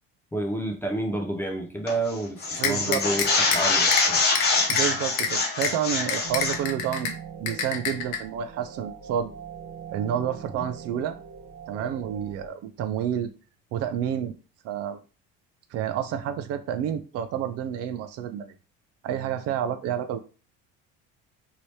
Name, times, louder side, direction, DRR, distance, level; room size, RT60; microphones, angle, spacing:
voice 1, 0.3-4.2 10.6-10.7, right 1 dB, 10° left, 2 dB, 0.4 m, -30 dB
sound 1, 1.9-2.1 2.4-6.6, left 3 dB, 35° left, 0.9 m, -24 dB
sound 2, 2.6-3.6 3.9-4.0 4.3-4.8 5.2-5.3 5.6-5.7 6.1-7.1 7.5-8.2, left 7 dB, 85° left, 0.8 m, -26 dB
voice 2, 2.6-3.0 4.7-7.1 7.4-9.3 9.9-11.2 11.7-13.3 13.7-14.3 14.6-15.0 15.7-18.5 19.0-20.2, right 9 dB, 55° right, 10 dB, 0.5 m, -29 dB
sound 3, 6.2-12.5, right 8 dB, 40° right, 0.9 m, -41 dB
2.9 x 2.7 x 3.2 m, 0.35 s
cardioid pair, 130°, 29 cm